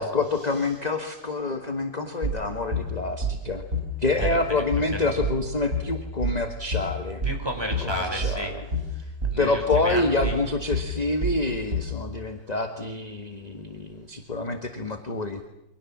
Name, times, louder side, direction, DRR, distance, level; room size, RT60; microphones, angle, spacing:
voice 1, 0.0-3.6 4.0-7.2 7.8-8.6 9.4-15.4, left 3 dB, 20° left, 5 dB, 1.6 m, -27 dB
sound 1, 2.2-12.0, equal, 40° right, 7.7 m, -29 dB
voice 2, 7.2-8.5 9.0-10.4, equal, 10° right, 3 dB, 5.3 m, -32 dB
29.0 x 24.5 x 7.4 m, 0.91 s
omnidirectional pair, 2.1 m